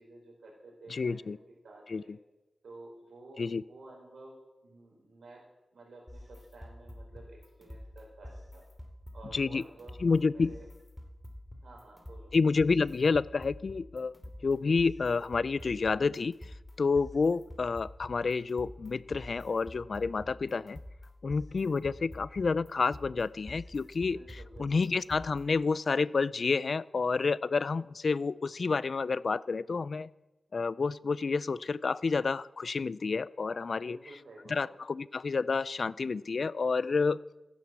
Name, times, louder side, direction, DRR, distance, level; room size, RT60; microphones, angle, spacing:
voice 1, 0.0-2.1 2.6-8.7 9.1-10.7 11.6-12.3 24.1-24.9 33.8-34.7, right 2 dB, 85° right, -1 dB, 4.7 m, -52 dB
voice 2, 0.9-1.4 1.9-2.0 3.4-3.6 9.3-9.6 10.0-10.5 12.3-14.1 14.4-20.8 21.2-24.2 24.6-30.1 30.5-34.0 34.5-37.2, left 4 dB, 60° left, 20 dB, 0.4 m, -29 dB
sound 1, 6.1-25.6, left 1 dB, 5° left, 2.8 m, -48 dB
15.0 x 10.0 x 7.6 m, 1.0 s
wide cardioid pair, 95°, 0 cm